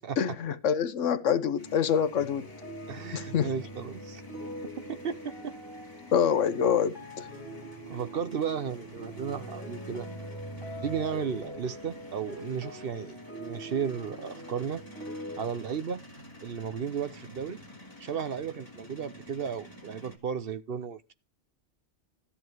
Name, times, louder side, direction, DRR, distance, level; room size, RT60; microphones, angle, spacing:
voice 1, 0.2-2.5 3.1-3.5 6.1-7.3, left 8 dB, 85° left, 1.2 m, -26 dB
sound 1, 1.6-20.2, equal, 15° left, 2.6 m, -47 dB
sound 2, 2.3-15.4, equal, 25° right, 5.1 m, -44 dB
voice 2, 2.9-4.2 4.9-5.6 7.9-10.1 10.8-14.8 15.4-16.0 16.4-17.6 18.0-21.1, right 7 dB, 55° right, 0.9 m, -34 dB
13.5 x 7.1 x 4.6 m
omnidirectional pair, 1.2 m